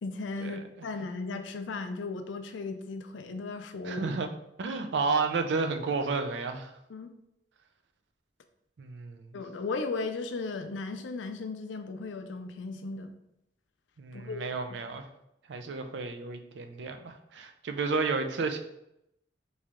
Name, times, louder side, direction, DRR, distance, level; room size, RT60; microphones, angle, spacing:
voice 1, 0.0-4.1 6.9-7.1 9.3-13.1 14.1-14.5, left 3 dB, 85° left, 8 dB, 0.4 m, -36 dB
voice 2, 3.8-4.3 4.6-6.7 8.8-9.3 14.0-15.0 15.5-18.6, right 4 dB, 70° right, 6 dB, 0.4 m, -31 dB
3.1 x 2.8 x 3.6 m, 0.82 s
head